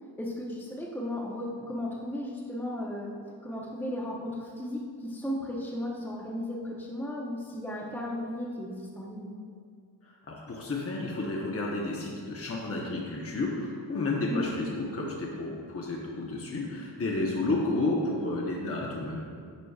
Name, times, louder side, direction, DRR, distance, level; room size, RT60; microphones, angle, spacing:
voice 1, 0.2-3.1 3.4-9.3 14.3-14.5, left 1 dB, 5° left, -4 dB, 0.8 m, -35 dB
voice 2, 10.0-19.2, left 2 dB, 30° left, -2 dB, 0.9 m, -31 dB
9.3 x 5.0 x 2.4 m, 2.2 s
cardioid pair, 65°, 44 cm